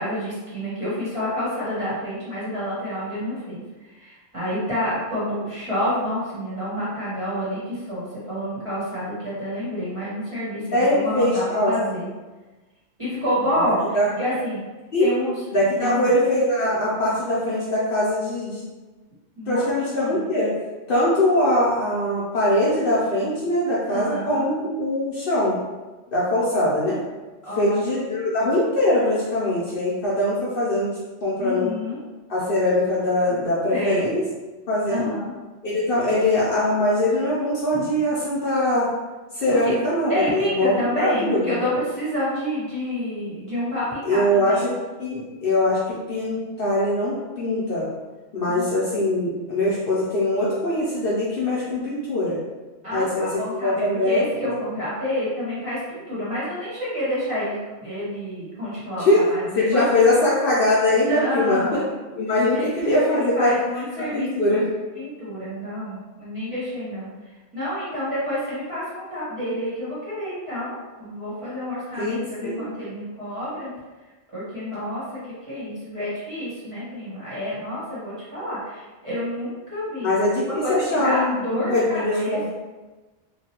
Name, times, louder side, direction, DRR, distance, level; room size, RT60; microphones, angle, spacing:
voice 1, 0.0-12.1 13.0-14.6 15.0-15.4 15.8-16.1 19.3-19.7 20.0-20.3 23.9-24.5 27.4-27.8 31.4-32.0 33.7-34.1 34.9-35.3 37.7-37.9 39.3-39.7 40.1-44.8 48.5-48.8 52.8-60.0 61.1-61.9 62.5-62.7 63.0-64.7 64.9-67.1 67.5-73.7 74.3-75.2 75.5-82.4, equal, 25° right, -11 dB, 1.2 m, -29 dB
voice 2, 10.7-11.7 13.9-14.1 14.9-15.1 15.5-18.6 19.5-20.5 20.9-25.6 26.1-27.0 27.6-30.9 31.2-31.7 32.3-34.2 34.7-35.1 35.6-38.9 39.4-41.6 44.1-44.7 45.0-47.9 48.3-52.4 52.9-54.5 59.0-59.2 59.5-61.8 62.1-63.5 64.0-64.6 72.0-72.5 80.0-82.5, left 1 dB, 55° left, -8 dB, 0.8 m, -22 dB
3.1 x 2.3 x 2.9 m, 1.2 s
omnidirectional pair, 1.2 m